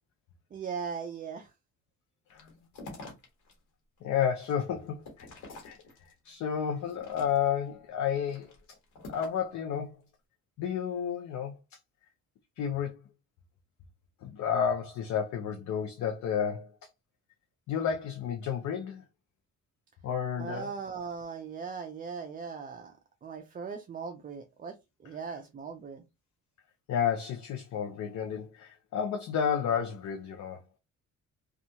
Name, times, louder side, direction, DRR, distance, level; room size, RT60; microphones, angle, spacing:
voice 1, 0.5-1.5 20.4-22.9 23.2-24.7 25.0-26.0, right 6 dB, 30° right, 0.4 m, -39 dB
sound 1, 2.3-3.5 4.0-6.3 6.8-7.7 8.2-9.5, left 2 dB, 90° left, 1.1 m, -48 dB
voice 2, 4.0-5.3 5.6-5.8 6.2-8.5 9.1-9.9 10.6-11.6 12.6-13.0 14.2-16.7 17.7-19.0 20.0-20.7 26.9-30.6, left 8 dB, 70° left, 0.6 m, -31 dB
2.7 x 2.3 x 2.6 m
cardioid pair, 90°, 30 cm